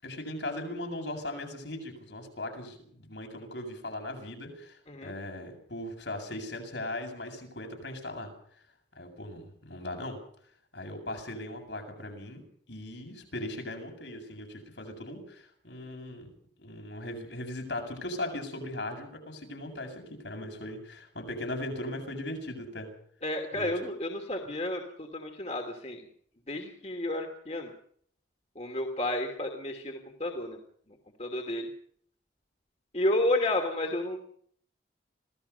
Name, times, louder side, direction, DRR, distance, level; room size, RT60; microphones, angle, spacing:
voice 1, 0.0-8.3 9.0-10.2 10.7-16.3 16.6-22.9 23.5-23.7, left 1 dB, 70° left, 3 dB, 7.6 m, -38 dB
voice 2, 23.2-26.1 26.5-27.7 28.6-30.6 31.2-31.7 32.9-34.2, left 1 dB, 35° left, 4 dB, 2.7 m, -31 dB
26.0 x 17.5 x 5.6 m, 0.62 s
head